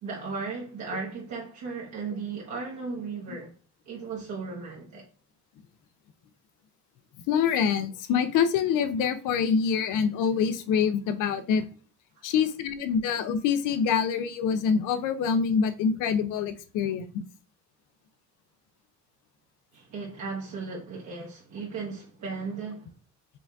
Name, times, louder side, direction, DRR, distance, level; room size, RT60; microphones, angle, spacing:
voice 1, 0.0-3.5 3.8-5.1 19.7-22.9, right 4 dB, 70° right, 1.1 m, -36 dB
voice 2, 7.3-11.6 12.2-17.1, left 7 dB, 90° left, 0.5 m, -25 dB
4.9 x 2.4 x 3.4 m
cardioid pair, 90°, 30 cm